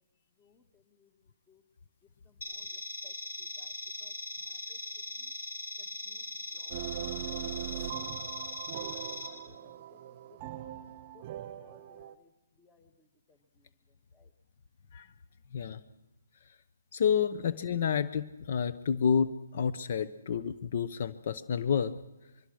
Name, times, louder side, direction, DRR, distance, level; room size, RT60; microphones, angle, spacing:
voice 1, 0.4-1.1 1.5-1.6 2.5-2.7 3.0-3.1 3.4-3.7 4.0-4.1 4.5-4.8 5.2-5.3 6.1-6.2 6.5-6.8 7.3-7.8 8.1-8.2 8.8-8.9 9.3-10.1 10.5-10.6 11.1-11.2 11.6-12.3 12.6-12.9 14.1-14.3, left 4 dB, 10° left, 9 dB, 1.6 m, -63 dB
sound 1, 2.4-9.3, left 2 dB, 80° left, 5.0 m, -40 dB
sound 2, 6.7-12.2, right 11 dB, 35° right, 1.0 m, -40 dB
voice 2, 16.9-22.0, left 7 dB, 50° left, 13 dB, 0.9 m, -29 dB
23.5 x 23.0 x 6.4 m, 1.0 s
hypercardioid pair, 155°, 0 cm